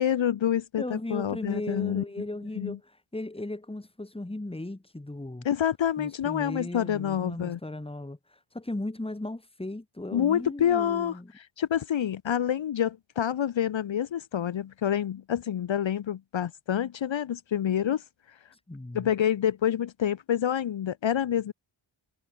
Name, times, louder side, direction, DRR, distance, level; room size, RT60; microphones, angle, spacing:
voice 1, 0.0-2.0 2.6-2.8 5.4-7.6 10.1-18.0 18.9-21.5, left 9 dB, 65° left, 0.9 m, -27 dB
voice 2, 0.8-5.5 6.0-11.3 18.7-19.1, left 2 dB, 10° left, 1.9 m, -37 dB
wide cardioid pair, 75°, 49 cm